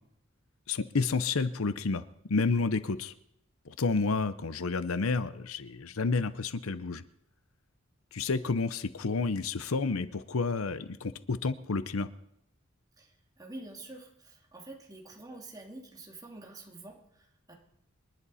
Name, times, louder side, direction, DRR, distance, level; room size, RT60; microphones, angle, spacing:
voice 1, 0.7-2.0 2.3-3.1 3.7-7.0 8.1-12.1, left 4 dB, 90° left, 14 dB, 0.8 m, -30 dB
voice 2, 13.0-17.5, right 2 dB, 20° right, 0 dB, 2.7 m, -47 dB
27.5 x 11.0 x 4.2 m, 0.78 s
head